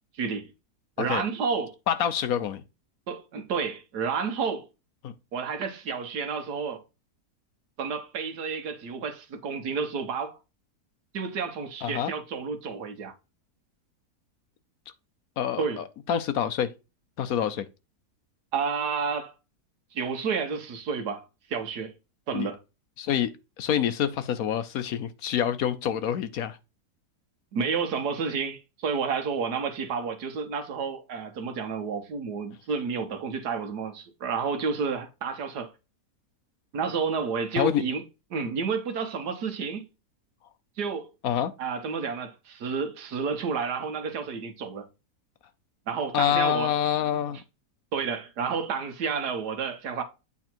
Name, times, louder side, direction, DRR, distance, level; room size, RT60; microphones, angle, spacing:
voice 1, 0.2-0.5 1.0-1.7 3.1-4.7 5.3-6.8 7.8-10.4 11.1-13.1 15.6-15.8 18.5-19.3 19.9-21.9 22.3-22.6 27.5-35.7 36.7-38.0 38.3-39.8 40.8-41.1 41.6-44.9 45.9-46.7 47.0-47.2 47.9-50.0, right 5 dB, 80° right, 1.7 m, -30 dB
voice 2, 1.9-2.6 5.0-5.1 11.8-12.1 15.4-16.7 17.2-17.7 22.3-22.5 23.0-23.3 23.6-26.6 37.6-37.8 41.2-41.5 46.1-47.4, left 9 dB, 70° left, 1.1 m, -26 dB
8.5 x 3.5 x 4.4 m
omnidirectional pair, 1.7 m